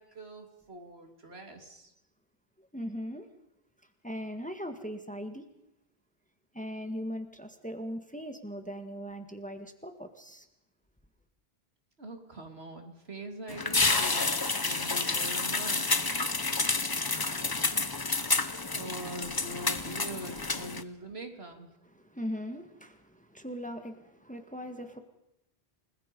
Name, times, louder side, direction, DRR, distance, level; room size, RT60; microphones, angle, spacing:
voice 1, 0.0-1.9 12.0-16.0 18.7-21.7, right 1 dB, 85° right, 4 dB, 3.1 m, -43 dB
voice 2, 2.6-3.3 4.0-5.4 6.5-10.5 21.9-25.0, equal, 5° left, 6 dB, 1.7 m, -39 dB
sound 1, 13.5-20.8, left 3 dB, 25° left, 0.9 m, -29 dB
29.0 x 20.5 x 5.4 m, 0.89 s
omnidirectional pair, 1.0 m